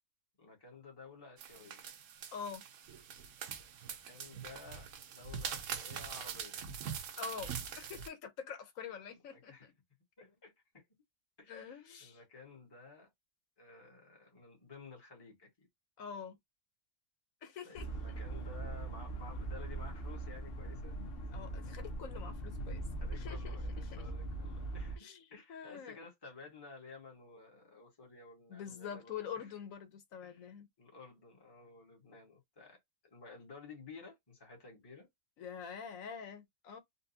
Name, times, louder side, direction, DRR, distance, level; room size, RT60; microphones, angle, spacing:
voice 1, 0.4-1.8 3.8-4.9 5.1-6.6 9.3-9.7 10.2-10.8 11.4-13.1 13.6-15.7 17.6-21.0 23.0-29.5 30.2-30.5 30.8-32.8 33.1-35.1, left 4 dB, 20° left, 1.2 m, -54 dB
sound 1, 1.4-8.1, right 7 dB, 75° right, 1.0 m, -43 dB
voice 2, 2.3-2.6 7.2-9.7 11.5-12.2 16.0-16.4 17.4-17.9 21.3-22.8 23.1-23.6 25.0-25.2 25.5-26.0 28.5-30.7 35.4-36.8, left 7 dB, 85° left, 1.2 m, -45 dB
sound 2, 17.8-25.0, right 2 dB, 50° left, 1.0 m, -41 dB
4.0 x 2.3 x 2.7 m
omnidirectional pair, 1.4 m